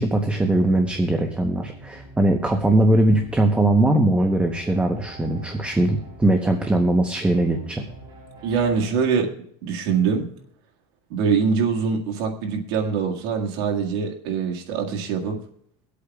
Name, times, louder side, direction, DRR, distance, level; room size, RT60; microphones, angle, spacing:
voice 1, 0.0-7.8, right 1 dB, 10° right, 4 dB, 0.9 m, -20 dB
sound 1, 0.6-8.9, right 2 dB, 35° right, 4.6 m, -45 dB
voice 2, 8.4-9.3 9.6-10.3 11.1-15.4, right 6 dB, 85° right, 1 dB, 1.9 m, -23 dB
24.0 x 8.3 x 2.4 m, 0.68 s
cardioid pair, 140°, 13 cm